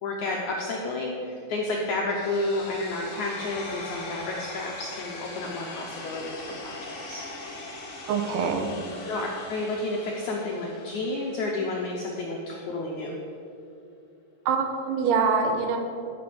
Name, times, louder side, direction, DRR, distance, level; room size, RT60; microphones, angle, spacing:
voice 1, 0.0-7.2 9.1-13.1, left 2 dB, 80° left, -1 dB, 1.7 m, -31 dB
sound 1, 2.1-12.1, left 2 dB, 45° left, 2.0 m, -41 dB
voice 2, 8.1-8.7 14.5-15.8, right 5 dB, 85° right, 4 dB, 2.9 m, -24 dB
13.0 x 5.1 x 6.8 m, 2.6 s
omnidirectional pair, 4.6 m